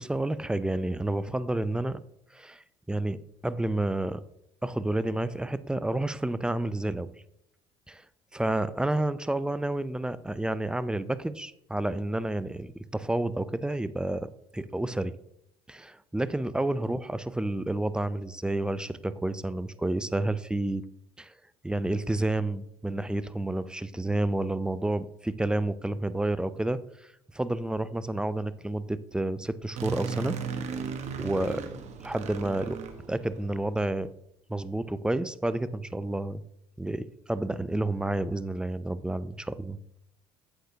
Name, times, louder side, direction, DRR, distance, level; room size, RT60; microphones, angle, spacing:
voice 1, 0.0-2.0 2.3-4.2 4.6-7.1 7.9-8.0 8.3-15.2 15.7-20.9 21.2-21.3 21.6-30.4 31.2-31.6 32.0-32.8 33.1-34.1 34.5-36.4 36.8-39.8, right 1 dB, 5° right, 15 dB, 0.4 m, -30 dB
sound 1, 29.7-33.7, right 6 dB, 55° right, 1.2 m, -36 dB
8.1 x 7.9 x 2.8 m, 0.75 s
supercardioid pair, 80°, 14 cm